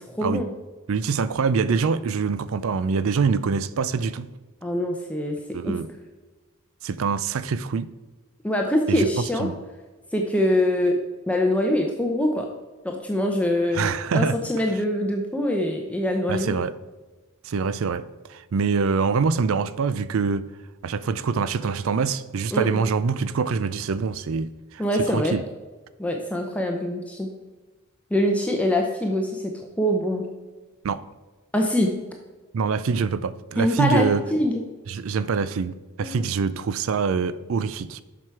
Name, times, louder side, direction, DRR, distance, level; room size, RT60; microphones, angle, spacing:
voice 1, 0.1-0.5 4.6-5.3 5.6-5.7 8.4-9.5 10.1-11.0 11.3-12.5 12.8-16.6 22.5-22.7 24.8-25.3 26.0-27.3 28.1-30.2 31.5-31.9 33.6-34.6 36.0-36.2, left 1 dB, 5° left, 0.7 m, -24 dB
voice 2, 0.9-4.3 5.5-5.9 6.8-7.9 8.9-9.5 13.7-14.4 16.3-16.7 17.4-18.0 18.3-20.5 20.8-24.8 25.1-25.4 30.8-31.0 32.5-34.2 34.9-38.0, right 5 dB, 65° right, 0.4 m, -25 dB
7.7 x 6.1 x 4.6 m
head